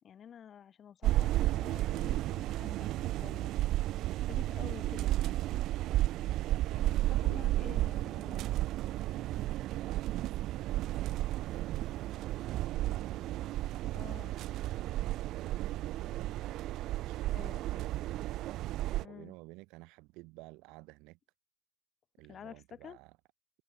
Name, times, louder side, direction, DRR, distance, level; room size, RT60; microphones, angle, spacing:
voice 1, 0.0-3.5 4.3-5.2 6.7-8.5 13.9-14.3 17.3-17.9 19.0-19.3 22.3-23.0, left 9 dB, 30° left, 5.3 m, -50 dB
sound 1, 1.0-19.0, right 15 dB, 50° right, 1.1 m, -33 dB
voice 2, 6.5-7.8 9.2-13.2 14.5-16.4 16.7-18.0 19.0-21.2 22.2-23.1, right 24 dB, 65° right, 4.3 m, -53 dB
cardioid pair, 150°, 0 cm